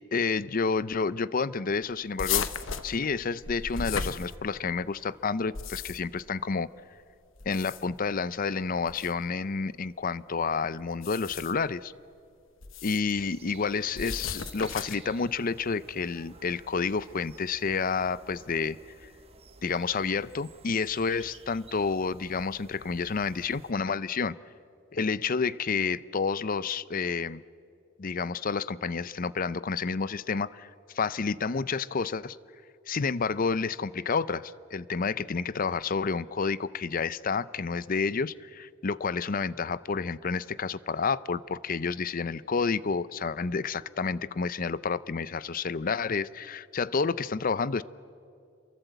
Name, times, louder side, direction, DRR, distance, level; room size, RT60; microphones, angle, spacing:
voice 1, 0.1-2.5 2.8-6.7 7.5-11.9 12.8-19.1 19.6-24.4 24.9-27.4 28.0-32.4 32.9-47.8, left 5 dB, 40° left, 17 dB, 0.5 m, -30 dB
sound 1, 2.2-4.8 5.4-6.2 7.4-8.0 8.9-9.1 10.9-11.7 12.6-13.1 13.9-15.1, left 6 dB, 65° left, 1.1 m, -35 dB
sound 2, 13.1-23.7, right 3 dB, 30° right, 1.3 m, -53 dB
28.0 x 23.0 x 8.1 m, 2.4 s
head